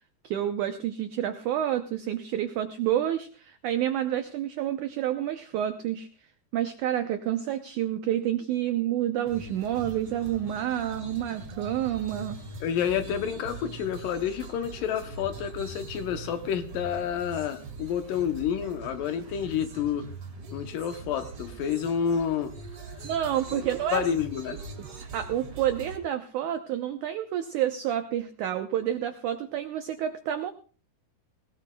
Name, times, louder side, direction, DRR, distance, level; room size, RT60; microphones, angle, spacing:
voice 1, 0.2-6.1 6.5-12.4 23.0-24.0 24.5-24.6 25.0-30.5, right 11 dB, 85° right, 8 dB, 1.7 m, -29 dB
sound 1, 9.2-26.0, right 3 dB, 45° right, 2.3 m, -42 dB
voice 2, 12.6-20.1 20.5-22.6 23.5-23.6 23.9-24.6, left 8 dB, 70° left, 8 dB, 2.3 m, -29 dB
20.0 x 19.0 x 2.3 m, 0.38 s
omnidirectional pair, 4.5 m